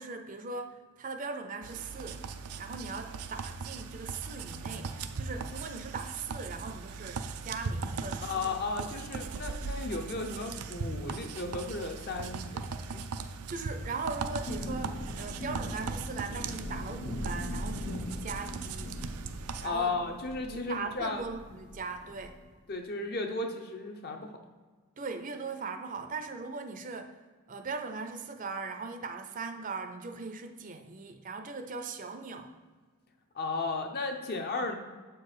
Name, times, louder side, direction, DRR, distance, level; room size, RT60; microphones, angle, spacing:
voice 1, 0.0-2.3 2.6-8.9 13.5-19.0 19.6-20.1 20.4-22.4 25.0-27.2 27.5-32.5, right 4 dB, 35° right, 7 dB, 0.5 m, -39 dB
sound 1, 1.6-19.7, right 4 dB, 90° right, 0.5 m, -39 dB
voice 2, 8.2-12.7 12.9-13.0 19.6-21.2 22.7-24.3 33.3-34.7, left 3 dB, 45° left, 4 dB, 0.7 m, -34 dB
Thunder / Rain, 14.0-22.5, left 1 dB, 80° left, 0.9 m, -40 dB
7.4 x 4.6 x 4.9 m, 1.5 s
head